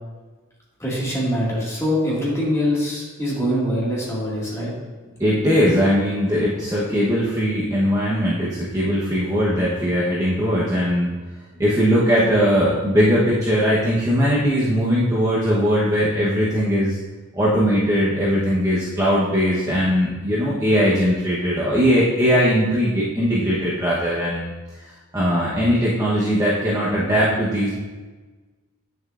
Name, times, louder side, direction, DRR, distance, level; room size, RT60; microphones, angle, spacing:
voice 1, 0.8-4.7, equal, 15° left, -6 dB, 1.9 m, -23 dB
voice 2, 5.2-11.1 11.6-17.0 17.3-24.5 25.1-27.7, equal, 15° right, -7 dB, 0.9 m, -20 dB
8.9 x 6.6 x 2.5 m, 1.3 s
head